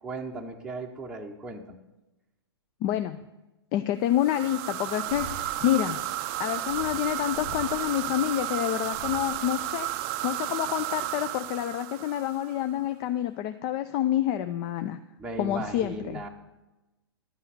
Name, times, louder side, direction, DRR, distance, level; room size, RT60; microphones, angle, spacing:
voice 1, 0.0-1.8 15.2-16.3, right 2 dB, 5° right, 0 dB, 0.8 m, -37 dB
voice 2, 2.8-3.2 3.7-6.0 6.4-9.9 10.2-15.0 15.4-16.2, left 12 dB, 30° left, 10 dB, 0.4 m, -28 dB
sound 1, 4.1-12.7, right 14 dB, 35° right, 0.5 m, -33 dB
sound 2, 5.1-10.6, equal, 90° left, 1.3 m, -46 dB
11.5 x 5.6 x 8.1 m, 1.0 s
figure-of-eight pair, 110°, 14 cm